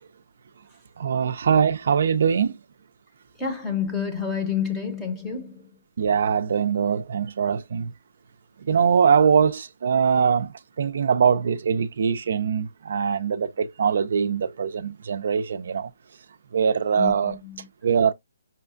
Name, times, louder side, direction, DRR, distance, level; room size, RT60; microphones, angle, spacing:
voice 1, 1.0-2.6 6.0-7.9 8.6-15.9 16.5-17.4 17.8-18.1, right 6 dB, 55° right, 0.4 m, -22 dB
voice 2, 3.4-5.7 17.0-17.7, left 7 dB, 10° left, 0.7 m, -29 dB
5.6 x 2.3 x 2.5 m
hypercardioid pair, 165°, 0 cm